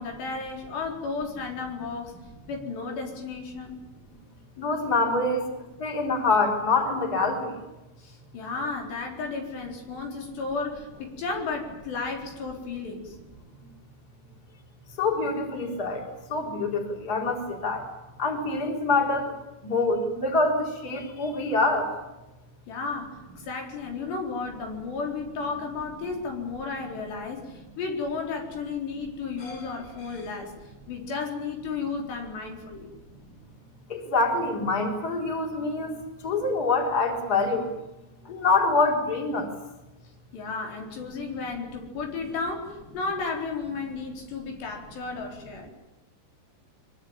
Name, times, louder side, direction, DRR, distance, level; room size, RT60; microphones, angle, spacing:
voice 1, 0.0-2.2 2.5-3.8 8.0-13.2 22.7-30.5 30.9-32.9 40.3-45.7, left 4 dB, 75° left, 2 dB, 6.4 m, -33 dB
voice 2, 4.6-5.4 5.8-7.5 15.0-16.0 16.3-17.8 18.2-19.3 19.6-21.9 33.9-35.9 36.2-37.7 38.3-39.5, left 3 dB, 20° left, 2 dB, 4.4 m, -25 dB
24.5 x 23.5 x 9.0 m, 1.0 s
omnidirectional pair, 4.9 m